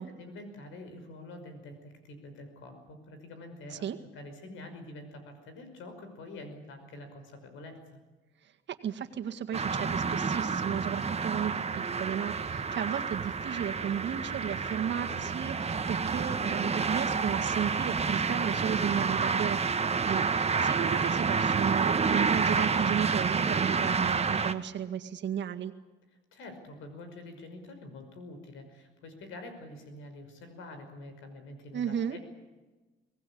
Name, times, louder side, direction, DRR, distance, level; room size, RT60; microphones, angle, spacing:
voice 1, 0.2-3.9 4.1-7.8 26.3-32.2, left 2 dB, 90° left, 7 dB, 5.5 m, -46 dB
voice 2, 8.7-25.7 31.7-32.2, right 9 dB, 65° right, 6 dB, 1.9 m, -34 dB
sound 1, 9.5-24.5, right 5 dB, 30° right, 1.4 m, -29 dB
24.0 x 19.0 x 8.7 m, 1.2 s
cardioid pair, 90°, 20 cm